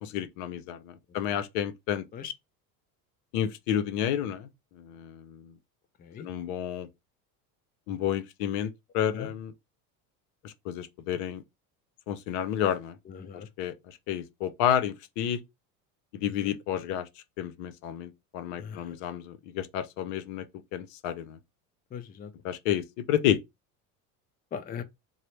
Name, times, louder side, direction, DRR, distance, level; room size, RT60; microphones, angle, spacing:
voice 1, 0.0-2.0 3.3-4.5 4.8-5.5 6.2-6.9 7.9-9.5 10.4-11.4 12.1-13.0 13.6-15.4 16.1-17.1 17.4-20.4 20.7-21.4 22.4-23.4, left 10 dB, 65° left, 0.7 m, -30 dB
voice 2, 13.1-13.5 16.4-16.5 18.6-19.0 21.9-22.3 24.5-24.8, left 8 dB, 20° left, 0.4 m, -39 dB
4.0 x 2.0 x 3.1 m
supercardioid pair, 95°, 43 cm